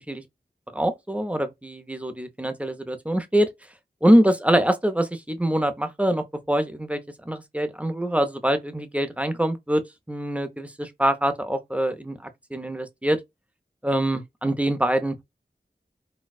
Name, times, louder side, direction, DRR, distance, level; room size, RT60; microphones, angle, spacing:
voice 1, 0.7-3.5 4.0-9.8 10.1-13.2 13.8-15.2, right 1 dB, 10° right, 0.6 m, -24 dB
4.1 x 2.3 x 2.4 m
wide cardioid pair, 50°, 18 cm